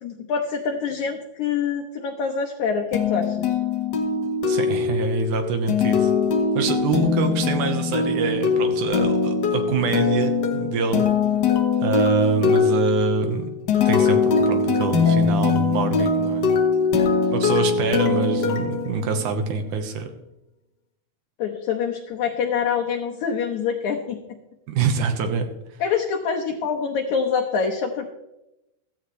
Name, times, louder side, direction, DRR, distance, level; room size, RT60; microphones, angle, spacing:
voice 1, 0.0-3.5 21.4-24.2 25.8-28.1, left 6 dB, 70° left, 1 dB, 2.2 m, -25 dB
sound 1, 2.9-19.6, left 5 dB, 85° left, 0.9 m, -22 dB
voice 2, 4.5-6.1 6.5-11.1 11.8-13.5 13.9-16.4 17.3-20.1 24.7-25.5, right 5 dB, 70° right, 7 dB, 2.6 m, -25 dB
15.5 x 14.0 x 3.2 m, 0.92 s
omnidirectional pair, 3.8 m